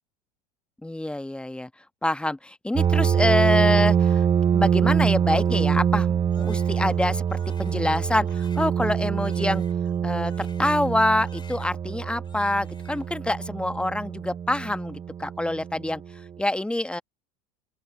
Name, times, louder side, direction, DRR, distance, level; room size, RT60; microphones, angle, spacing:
voice 1, 0.8-1.7 2.0-4.2 4.5-9.6 10.0-16.0 16.4-17.0, left 1 dB, 5° left, 1.1 m, -26 dB
sound 1, 2.8-16.1, right 8 dB, 25° right, 0.8 m, -24 dB
Crying sobbing, 6.3-11.0 11.2-12.0 12.2-13.2, left 6 dB, 25° left, 4.4 m, -53 dB
open air
hypercardioid pair, 80°, 19 cm